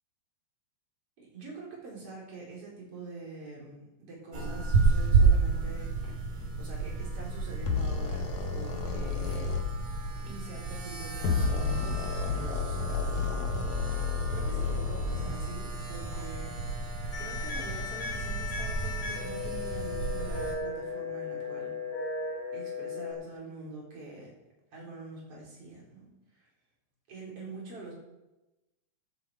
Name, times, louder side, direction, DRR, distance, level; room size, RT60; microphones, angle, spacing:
voice 1, 1.2-6.0 6.6-9.6 10.2-13.7 14.0-16.6 17.2-21.7 22.5-24.3 24.7-26.1 26.3-26.5 27.1-27.9, right 3 dB, 45° right, -3 dB, 4.9 m, -45 dB
sound 1, 4.3-20.5, right 4 dB, 85° right, 5.1 m, -31 dB
sound 2, 7.7-9.7 11.1-15.5, left 5 dB, 70° left, 2.7 m, -31 dB
sound 3, 17.1-23.1, left 4 dB, 45° left, 4.3 m, -36 dB
15.5 x 10.5 x 4.7 m, 1.0 s
omnidirectional pair, 3.7 m